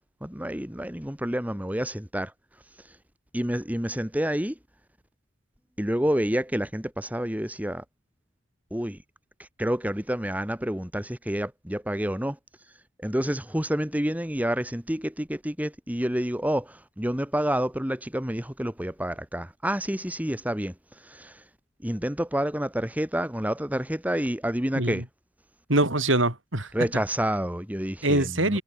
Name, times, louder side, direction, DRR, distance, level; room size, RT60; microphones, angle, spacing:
voice 1, 0.2-2.3 3.3-4.6 5.8-7.8 8.7-9.0 9.4-12.4 13.0-20.7 21.0-21.4 21.8-25.0 26.7-28.6, equal, 10° right, 1.9 m, -28 dB
voice 2, 24.7-25.1 25.7-26.7 28.0-28.6, right 2 dB, 80° right, 7.4 m, -24 dB
head